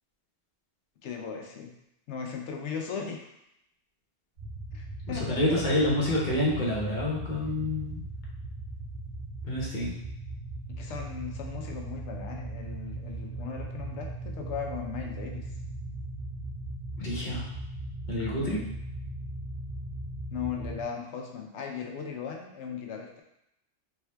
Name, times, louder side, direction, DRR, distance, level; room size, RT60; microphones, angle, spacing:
voice 1, 1.0-1.7 2.1-3.3 4.7-5.9 10.8-15.5 18.4-18.6 20.3-23.2, left 6 dB, 85° left, 2 dB, 1.0 m, -37 dB
sound 1, 4.4-20.8, right 2 dB, 65° right, 1.4 m, -38 dB
voice 2, 5.1-8.0 9.5-9.9 17.0-17.4 18.1-18.6, left 1 dB, 45° left, -5 dB, 1.1 m, -28 dB
4.5 x 3.5 x 2.2 m, 0.81 s
omnidirectional pair, 1.2 m